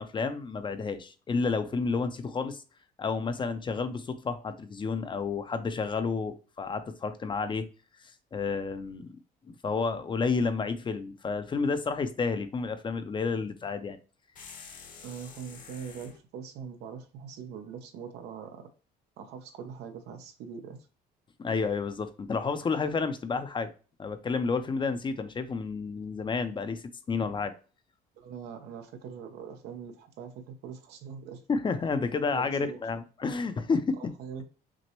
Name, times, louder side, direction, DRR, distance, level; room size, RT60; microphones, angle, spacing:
voice 1, 0.0-2.6 3.0-7.7 8.3-9.2 9.5-14.0 21.4-23.7 24.0-27.5 31.5-34.1, left 4 dB, 30° left, 0.6 m, -30 dB
sound 1, 14.4-16.2, left 5 dB, 50° left, 1.0 m, -48 dB
voice 2, 15.0-18.7 19.2-20.9 28.2-31.4 32.3-32.8 34.0-34.4, right 7 dB, 80° right, 0.9 m, -42 dB
6.0 x 2.1 x 3.0 m
cardioid pair, 110°, 17 cm